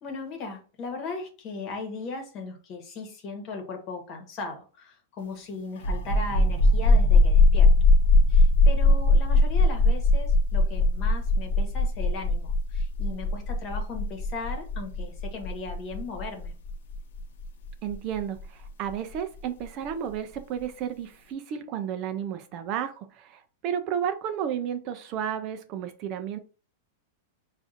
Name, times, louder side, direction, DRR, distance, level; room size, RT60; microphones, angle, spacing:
voice 1, 0.0-7.7 8.3-16.5, left 3 dB, 30° left, 2 dB, 1.2 m, -37 dB
sound 1, 5.8-19.1, left 2 dB, 75° left, 0.8 m, -21 dB
voice 2, 17.8-26.4, right 9 dB, 35° right, 8 dB, 0.4 m, -32 dB
6.3 x 2.5 x 2.5 m, 0.36 s
supercardioid pair, 160°, 0 cm